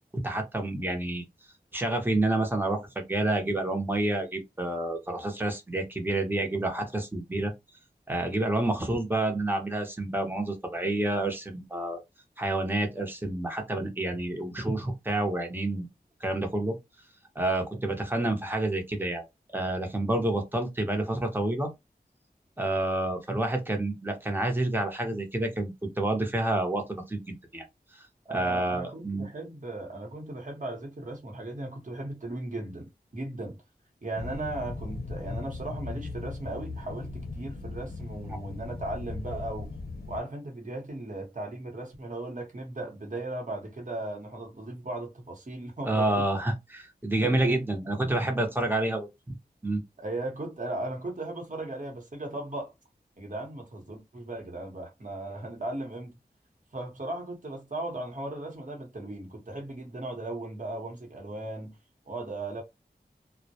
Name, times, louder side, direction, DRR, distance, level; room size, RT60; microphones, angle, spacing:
voice 1, 0.2-1.2 1.7-7.5 8.1-12.0 12.4-15.9 16.2-16.8 17.3-19.2 19.5-21.7 22.6-27.6 28.3-29.3 45.8-49.1 49.6-49.8, right 2 dB, 10° right, 0.8 m, -29 dB
voice 2, 28.3-33.6 34.0-39.7 40.1-46.2 47.2-47.7 50.0-52.7 53.2-56.1 56.7-61.8 62.1-62.6, right 2 dB, 50° right, 1.0 m, -37 dB
sound 1, 34.2-40.2, left 3 dB, 65° left, 0.6 m, -38 dB
2.1 x 2.1 x 2.7 m
wide cardioid pair, 45°, 17 cm